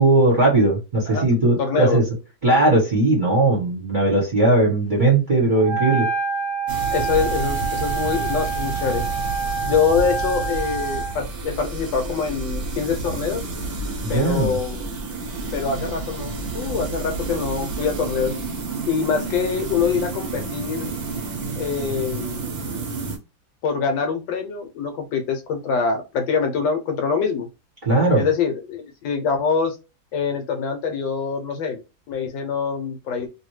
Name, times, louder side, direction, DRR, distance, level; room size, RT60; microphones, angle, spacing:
voice 1, 0.0-2.0 2.4-6.1 14.0-14.6 27.9-28.2, right 2 dB, 30° right, -3 dB, 1.0 m, -18 dB
voice 2, 1.6-2.0 6.9-9.0 9.6-13.4 14.1-15.0 15.5-18.3 18.9-20.9 21.6-22.4 23.6-27.5 28.1-29.8 30.1-31.8 32.1-33.3, left 5 dB, 80° left, 5 dB, 1.4 m, -24 dB
Wind instrument woodwind instrument, 5.6-11.2, right 5 dB, 35° left, 0.6 m, -27 dB
sound 1, 6.7-23.2, right 3 dB, 55° right, 0.7 m, -30 dB
2.8 x 2.6 x 3.1 m, 0.29 s
omnidirectional pair, 2.0 m